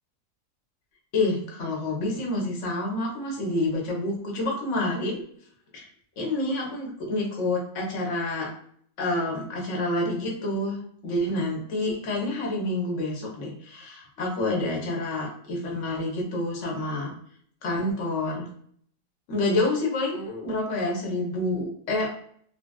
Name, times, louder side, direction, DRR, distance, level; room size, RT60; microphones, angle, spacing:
voice 1, 1.1-5.2 5.7-5.9 6.2-8.5 9.0-17.1 17.6-18.5 19.3-22.1, left 2 dB, 55° left, -1 dB, 1.1 m, -28 dB
3.4 x 2.4 x 2.2 m, 0.62 s
omnidirectional pair, 1.7 m